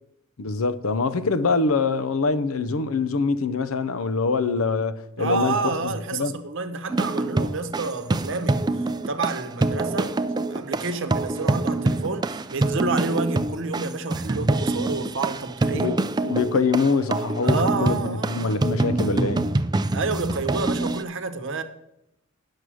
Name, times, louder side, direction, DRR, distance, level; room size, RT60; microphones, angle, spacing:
voice 1, 0.4-5.6 5.8-6.3 15.7-19.5, left 4 dB, 75° left, 0.6 m, -24 dB
voice 2, 5.2-10.2 10.5-16.0 17.4-18.7 19.9-21.6, right 3 dB, 60° right, 0.9 m, -29 dB
sound 1, 6.9-21.0, right 2 dB, 20° right, 0.3 m, -25 dB
9.9 x 6.5 x 6.2 m
head